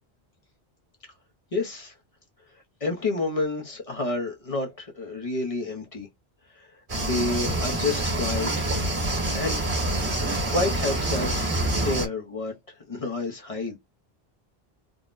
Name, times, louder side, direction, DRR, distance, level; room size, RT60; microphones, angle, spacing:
voice 1, 1.5-1.9 2.8-6.1 6.6-6.7 7.0-8.7 9.3-9.6 10.5-12.5 12.9-13.8, left 3 dB, 40° left, 0.6 m, -29 dB
sound 1, 6.9-12.1, right 1 dB, 55° right, 1.6 m, -26 dB
3.6 x 2.0 x 2.4 m
omnidirectional pair, 1.1 m